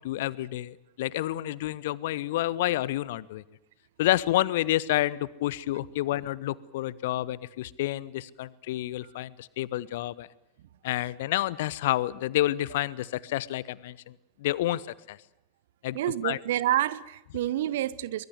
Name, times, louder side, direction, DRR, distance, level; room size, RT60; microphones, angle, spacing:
voice 1, 0.0-3.4 4.0-10.3 10.8-15.2 15.8-16.0 16.2-16.4, left 15 dB, 55° left, 22 dB, 0.9 m, -29 dB
voice 2, 15.9-18.3, right 13 dB, 55° right, 19 dB, 1.1 m, -28 dB
23.5 x 21.5 x 8.0 m, 0.87 s
figure-of-eight pair, 90°, 0 cm